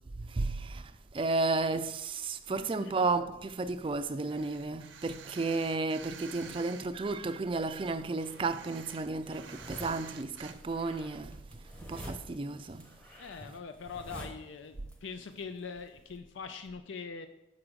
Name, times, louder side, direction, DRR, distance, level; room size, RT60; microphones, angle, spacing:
voice 1, 0.2-11.4 11.9-12.9, right 3 dB, 30° right, 0.4 m, -33 dB
voice 2, 2.5-3.0 13.2-17.3, left 5 dB, 90° left, 0.5 m, -43 dB
sound 1, 4.3-6.8 7.3-10.5, right 7 dB, 85° right, 0.7 m, -50 dB
sound 2, 9.3-10.1 10.5-14.9 15.2-16.1, equal, 5° left, 0.9 m, -47 dB
5.9 x 5.0 x 6.2 m
head